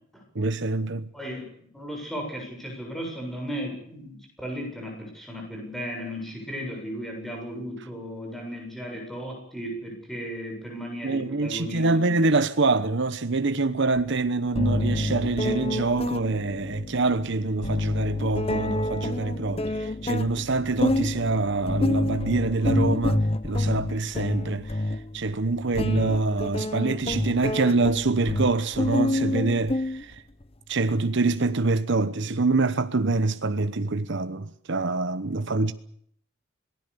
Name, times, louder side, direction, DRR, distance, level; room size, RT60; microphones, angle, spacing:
voice 1, 0.3-1.1 11.0-30.2 30.7-35.7, right 3 dB, 60° right, 1.0 m, -25 dB
voice 2, 1.1-1.5 1.7-12.2, equal, ahead, 7.6 m, -35 dB
sound 1, 14.0-14.1 14.6-30.4, left 1 dB, 30° left, 0.9 m, -28 dB
26.5 x 19.0 x 6.9 m
head